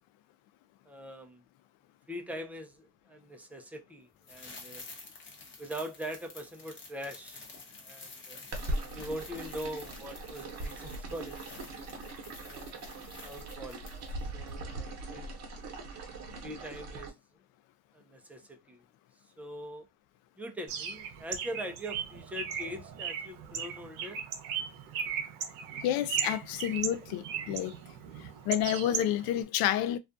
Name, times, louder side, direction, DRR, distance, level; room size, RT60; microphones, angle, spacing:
voice 1, 0.9-1.4 2.1-4.9 5.6-7.5 7.9-8.4 8.9-11.4 12.4-12.9 13.2-13.9 14.3-15.3 16.4-17.1 17.9-18.8 19.4-19.9 20.4-24.2, equal, 5° right, 0.4 m, -42 dB
Bag of Trash, 4.2-14.2 14.5-14.6, left 3 dB, 35° left, 0.9 m, -50 dB
sound 1, 8.5-17.1, right 2 dB, 50° right, 0.9 m, -40 dB
Bird, 20.7-29.4, right 7 dB, 85° right, 0.6 m, -37 dB
voice 2, 25.8-27.8 28.2-30.0, left 11 dB, 85° left, 0.5 m, -30 dB
2.4 x 2.3 x 2.5 m
cardioid pair, 115°, 34 cm